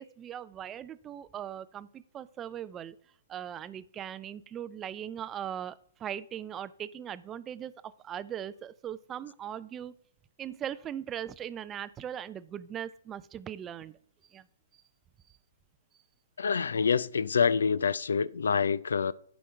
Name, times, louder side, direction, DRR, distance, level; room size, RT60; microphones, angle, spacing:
voice 1, 0.0-3.0 3.3-7.7 8.0-9.9 10.4-13.9 14.3-14.4, right 10 dB, 20° right, 0.4 m, -39 dB
voice 2, 16.4-19.1, left 6 dB, 80° left, 0.4 m, -26 dB
11.0 x 5.2 x 4.4 m
hypercardioid pair, 140°, 0 cm